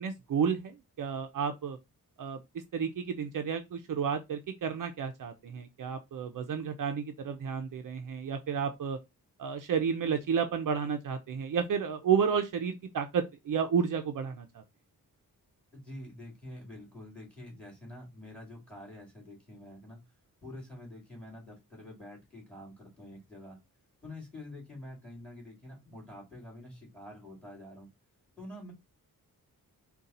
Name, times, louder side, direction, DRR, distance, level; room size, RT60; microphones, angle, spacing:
voice 1, 0.0-1.8 2.2-2.4 2.7-9.0 9.4-14.6, right 7 dB, 60° right, 0.5 m, -31 dB
voice 2, 15.7-20.0 20.4-23.6 24.0-27.9 28.4-28.7, left 1 dB, 5° left, 2.1 m, -47 dB
3.9 x 2.3 x 4.0 m
wide cardioid pair, 160°, 36 cm